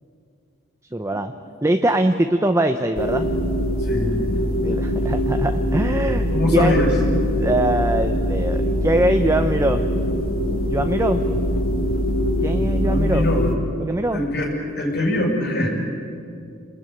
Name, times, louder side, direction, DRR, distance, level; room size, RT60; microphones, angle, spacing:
voice 1, 0.9-1.3 1.6-3.3 4.6-6.8 7.3-9.8 10.7-11.2 12.4-13.2 13.8-14.2, right 1 dB, 15° right, 6 dB, 0.8 m, -22 dB
sound 1, 3.0-13.5, equal, 85° left, 3.0 m, -22 dB
voice 2, 3.8-4.1 6.3-6.9 12.8-13.4 14.1-14.5 14.8-15.7, left 1 dB, 55° left, 0 dB, 6.6 m, -22 dB
27.5 x 21.0 x 9.4 m, 2.5 s
head